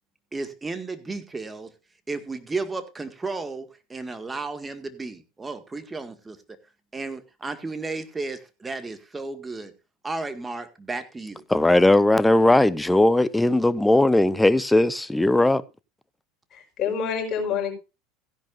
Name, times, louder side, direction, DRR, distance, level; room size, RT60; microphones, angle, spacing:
voice 1, 0.3-1.7 2.1-6.4 6.9-9.7 10.0-11.4, right 3 dB, 15° right, 1.9 m, -33 dB
voice 2, 11.5-15.6, left 1 dB, 10° left, 0.8 m, -18 dB
voice 3, 16.5-17.7, left 7 dB, 45° left, 5.2 m, -27 dB
16.0 x 10.5 x 2.6 m
hypercardioid pair, 80°, 0 cm